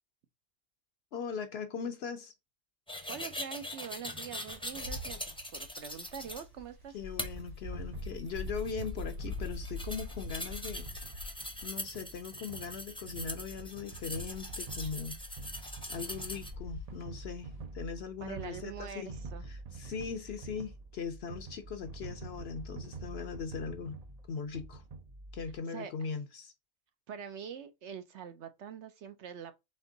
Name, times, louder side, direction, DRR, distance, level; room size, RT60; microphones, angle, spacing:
voice 1, 1.1-2.3 6.9-10.9 11.6-15.2 15.9-19.2 19.5-24.0 24.3-24.8 25.3-26.5, left 6 dB, 60° left, 0.8 m, -40 dB
sound 1, 2.9-6.4 7.2-7.3 8.0-16.5, left 1 dB, 5° left, 0.5 m, -42 dB
voice 2, 3.1-5.2 5.5-7.0 18.2-19.4 25.7-25.9 27.1-29.5, right 8 dB, 65° right, 0.8 m, -44 dB
Wind, 4.5-17.6, left 2 dB, 85° right, 2.6 m, -44 dB
sound 2, 7.2-25.6, right 3 dB, 50° right, 0.5 m, -47 dB
4.4 x 2.9 x 3.7 m
omnidirectional pair, 1.4 m